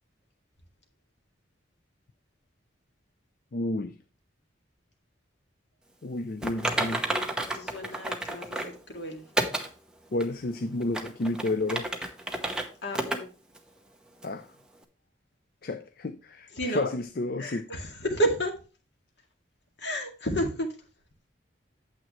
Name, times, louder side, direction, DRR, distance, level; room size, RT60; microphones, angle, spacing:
voice 1, 3.5-4.0 6.0-7.1 10.1-11.9 14.2-14.6 15.6-17.7, left 2 dB, 50° left, 0.5 m, -31 dB
Typing, 6.4-8.8 9.4-9.7 10.2-10.3 10.8-12.6 12.9-13.2 13.5-13.6 14.2-14.3, right 1 dB, 5° right, 0.8 m, -30 dB
voice 2, 7.5-9.2 12.8-13.3 16.5-16.9 17.4-18.5 19.8-20.7, right 1 dB, 65° left, 2.1 m, -31 dB
9.0 x 7.6 x 3.1 m
head